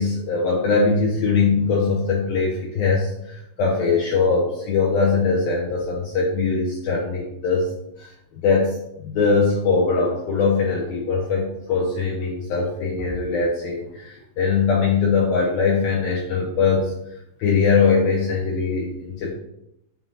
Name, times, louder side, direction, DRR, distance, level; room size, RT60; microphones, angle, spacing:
voice 1, 0.0-7.7 8.0-16.9 17.4-19.3, left 4 dB, 70° left, -4 dB, 2.3 m, -21 dB
7.7 x 3.8 x 5.5 m, 0.80 s
omnidirectional pair, 5.5 m